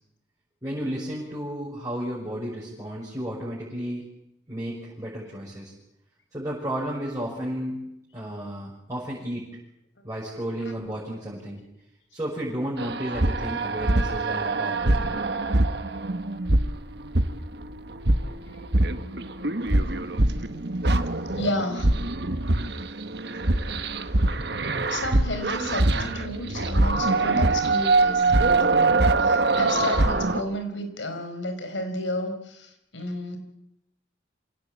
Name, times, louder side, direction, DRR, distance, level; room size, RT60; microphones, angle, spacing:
voice 1, 0.6-4.0 4.5-5.7 6.3-7.8 8.1-9.5 10.0-11.6 12.1-15.2 24.4-24.5, equal, 15° right, -6 dB, 6.1 m, -33 dB
sound 1, 12.8-30.4, right 2 dB, 60° right, 1.3 m, -23 dB
voice 2, 21.4-21.9 24.9-33.4, left 1 dB, 80° left, 7 dB, 4.7 m, -32 dB
27.0 x 17.0 x 8.6 m, 0.83 s
head